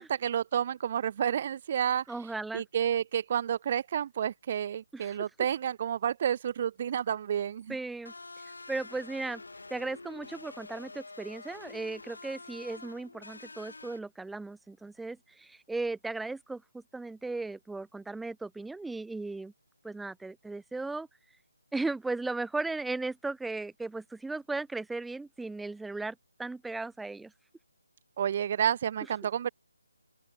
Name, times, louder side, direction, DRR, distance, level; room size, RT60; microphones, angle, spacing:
voice 1, 0.0-2.0 2.5-7.8 28.2-29.5, right 9 dB, 30° right, 0.9 m, -30 dB
voice 2, 2.1-2.6 4.9-5.2 7.7-8.1 8.7-9.4 9.7-19.5 19.8-21.1 21.7-27.3, right 3 dB, ahead, 0.6 m, -36 dB
sound 1, 8.1-14.0, left 3 dB, 80° left, 7.1 m, -47 dB
open air
figure-of-eight pair, 165°, 0 cm